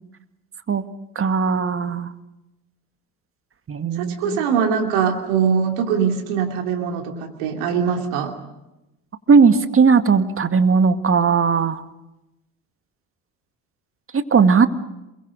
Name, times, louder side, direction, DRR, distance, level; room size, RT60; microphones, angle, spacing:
voice 1, 1.2-2.1 3.7-4.4 9.3-11.8 14.1-14.7, right 5 dB, 30° right, 9 dB, 1.9 m, -17 dB
voice 2, 4.0-8.3, right 7 dB, 70° right, 2 dB, 2.9 m, -22 dB
28.0 x 22.5 x 6.5 m, 0.94 s
hypercardioid pair, 65°, 42 cm